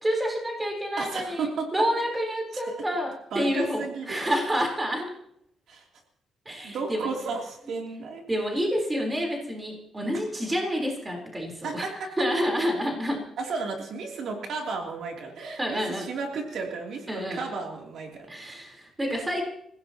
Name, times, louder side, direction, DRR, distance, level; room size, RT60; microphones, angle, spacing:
voice 1, 0.0-5.1 6.5-7.1 8.3-11.9 12.2-13.2 15.6-16.1 17.1-17.4 18.3-19.4, equal, 10° right, 1 dB, 3.8 m, -28 dB
voice 2, 1.0-1.7 3.3-4.2 5.7-5.9 6.6-8.2 11.6-11.9 13.4-18.4 19.1-19.2, right 4 dB, 60° right, 1 dB, 2.9 m, -33 dB
27.5 x 16.5 x 2.9 m, 0.73 s
cardioid pair, 170°, 0 cm